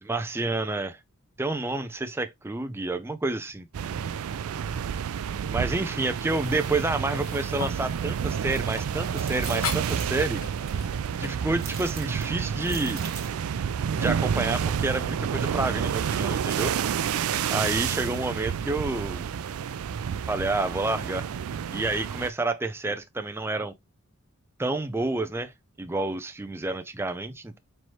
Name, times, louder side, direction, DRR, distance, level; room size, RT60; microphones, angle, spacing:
voice 1, 0.0-1.0 1.4-3.7 5.5-10.4 11.2-13.0 13.9-16.7 17.5-19.3 20.3-21.3 21.7-23.7 24.6-25.5 25.8-27.6, right 2 dB, 10° right, 0.4 m, -29 dB
sound 1, 3.7-22.3, right 7 dB, 90° right, 0.4 m, -29 dB
sound 2, 6.3-13.1, left 6 dB, 75° left, 0.9 m, -40 dB
sound 3, 8.5-8.8 9.1-10.7 11.6-13.4, right 6 dB, 45° right, 1.4 m, -42 dB
4.5 x 3.1 x 2.8 m
head